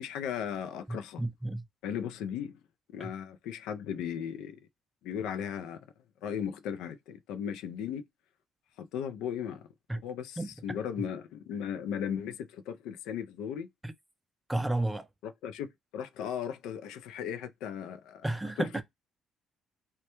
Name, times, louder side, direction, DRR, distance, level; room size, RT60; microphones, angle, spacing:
voice 1, 0.0-1.2 1.8-2.6 2.9-4.6 5.0-5.8 6.2-8.0 8.8-9.7 10.0-13.7 15.4-18.2, left 8 dB, 85° left, 0.3 m, -36 dB
voice 2, 0.9-1.7 3.0-3.1 9.9-10.0 10.4-10.5 13.8-13.9 14.5-15.1 18.2-18.8, right 1 dB, 10° right, 0.4 m, -32 dB
2.1 x 2.1 x 2.8 m
cardioid pair, 100°, 0 cm